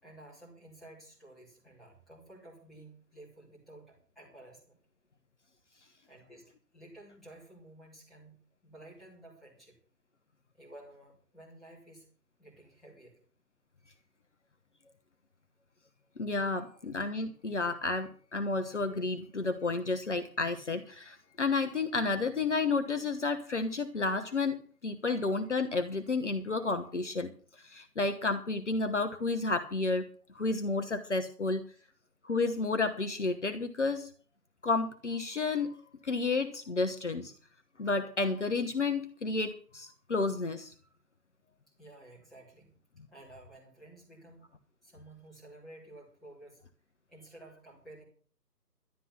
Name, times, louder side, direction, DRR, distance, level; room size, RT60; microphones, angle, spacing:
voice 1, 0.0-4.8 6.1-8.4 8.6-9.8 10.5-12.1 12.4-13.2 16.7-16.8 31.7-31.8 41.7-42.7 43.1-44.5 44.8-46.6 47.1-48.0, right 1 dB, ahead, -8 dB, 3.3 m, -53 dB
voice 2, 16.2-27.3 27.6-30.1 30.3-31.6 32.2-34.1 34.6-35.8 36.0-37.3 37.8-40.7, left 3 dB, 45° left, 8 dB, 1.2 m, -31 dB
12.5 x 11.0 x 5.8 m, 0.43 s
figure-of-eight pair, 155°, 49 cm